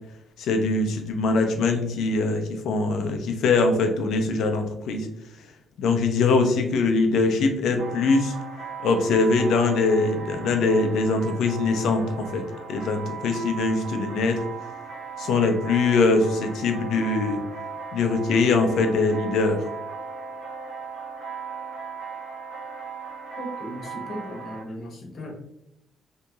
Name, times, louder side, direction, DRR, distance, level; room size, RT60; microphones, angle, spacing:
voice 1, 0.4-5.1 5.8-8.3 8.8-12.4 12.7-14.4 15.2-17.4 17.9-19.6, left 3 dB, 75° left, 5 dB, 0.5 m, -22 dB
sound 1, 7.8-24.6, right 5 dB, 80° right, 0.9 m, -37 dB
voice 2, 23.4-25.3, equal, 55° left, 0 dB, 0.9 m, -37 dB
2.8 x 2.8 x 2.3 m, 0.83 s
cardioid pair, 90°, 0 cm